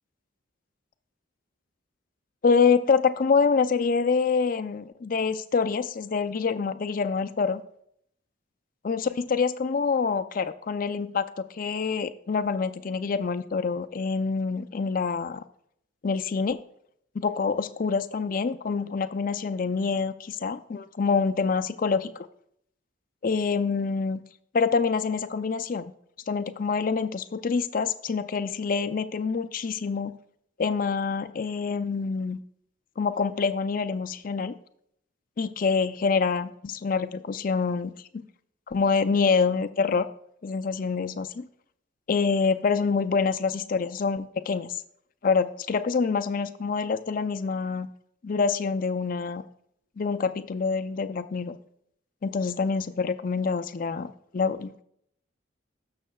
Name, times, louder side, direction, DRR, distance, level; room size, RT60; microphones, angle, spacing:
voice 1, 2.4-7.6 8.8-15.4 16.0-16.6 17.1-22.3 23.2-24.2 24.5-25.9 26.3-30.1 30.6-32.4 33.0-34.5 35.4-38.2 38.7-40.1 40.4-41.5 42.1-44.8 45.2-47.9 48.2-49.4 50.0-51.6 52.2-54.8, left 5 dB, 45° left, 12 dB, 0.4 m, -26 dB
18.5 x 6.4 x 2.3 m, 0.71 s
head